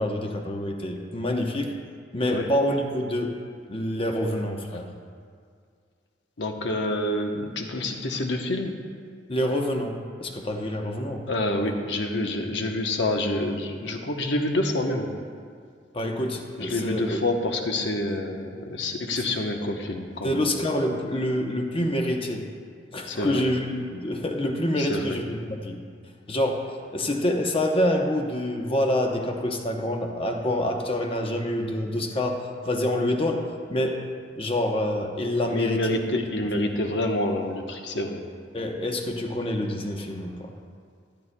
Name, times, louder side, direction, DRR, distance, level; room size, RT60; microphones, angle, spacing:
voice 1, 0.0-1.7 2.1-3.3 3.7-4.9 9.3-11.3 15.9-17.2 20.2-22.4 22.9-25.8 26.3-32.4 32.6-34.1 34.4-36.0 38.5-40.5, left 1 dB, 30° left, 2 dB, 0.8 m, -27 dB
voice 2, 6.4-8.7 11.3-15.1 16.6-20.4 23.1-23.4 24.8-25.2 35.5-38.2, left 1 dB, 75° left, 3 dB, 0.9 m, -27 dB
12.5 x 12.0 x 2.2 m, 2.1 s
head